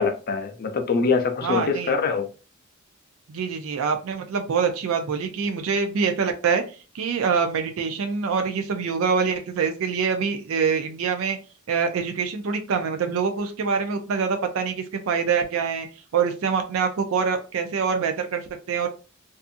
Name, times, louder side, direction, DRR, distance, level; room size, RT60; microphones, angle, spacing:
voice 1, 0.0-2.3, left 4 dB, 50° left, 0.5 m, -24 dB
voice 2, 1.4-2.0 3.3-6.6 6.9-11.4 11.7-15.9 16.1-18.9, right 6 dB, 75° right, 0.4 m, -25 dB
2.7 x 2.4 x 2.5 m
head